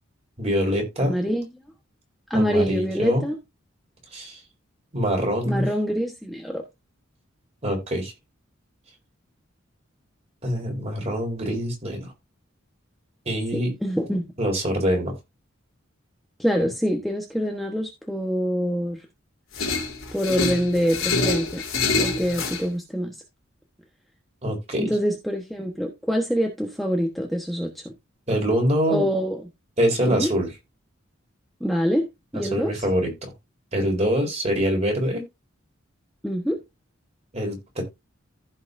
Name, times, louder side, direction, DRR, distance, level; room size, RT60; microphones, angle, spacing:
voice 1, 0.4-1.2 2.3-3.2 4.1-4.4 4.9-5.7 7.6-8.1 10.4-12.1 13.3-13.7 14.4-15.2 24.4-25.0 28.3-29.1 29.8-30.5 32.3-33.3 33.7-35.2 37.3-37.8, equal, 30° right, 4.0 m, -24 dB
voice 2, 1.1-1.5 2.3-3.4 5.4-6.6 13.5-14.3 16.4-19.0 20.1-21.6 21.9-23.1 24.7-27.9 28.9-29.4 30.1-30.3 31.6-32.1 32.3-32.8 36.2-36.6, equal, ahead, 1.2 m, -25 dB
sound 1, 19.5-22.6, left 3 dB, 90° left, 3.4 m, -26 dB
15.0 x 5.7 x 2.6 m
head